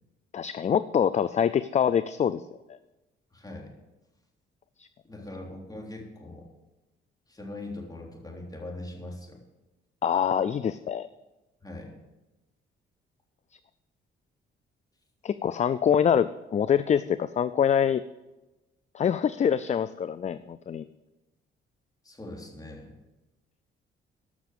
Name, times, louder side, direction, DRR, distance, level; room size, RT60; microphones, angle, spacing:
voice 1, 0.3-2.4 4.8-4.9 10.0-11.1 15.2-18.0 18.9-20.8, left 8 dB, 35° left, 15 dB, 0.4 m, -25 dB
voice 2, 3.3-3.7 5.0-6.5 7.3-9.4 11.6-12.0 22.0-22.9, left 2 dB, 20° left, -1 dB, 3.4 m, -41 dB
13.5 x 6.1 x 7.4 m, 1.0 s
cardioid pair, 90°, 20 cm